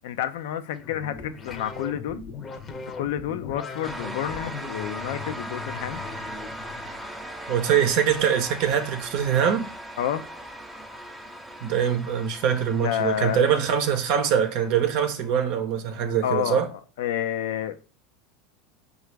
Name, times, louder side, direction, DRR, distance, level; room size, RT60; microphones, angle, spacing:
voice 1, 0.0-2.2 3.0-6.0 10.0-10.3 12.8-13.4 16.2-16.6 17.0-17.9, left 10 dB, 75° left, 0.4 m, -29 dB
sound 1, 0.7-7.1, left 5 dB, 30° left, 0.7 m, -39 dB
sound 2, 3.8-15.3, right 1 dB, 10° right, 0.5 m, -39 dB
voice 2, 7.5-9.7 11.6-16.7, right 8 dB, 60° right, 0.6 m, -23 dB
4.8 x 2.3 x 3.2 m
hypercardioid pair, 105°, 0 cm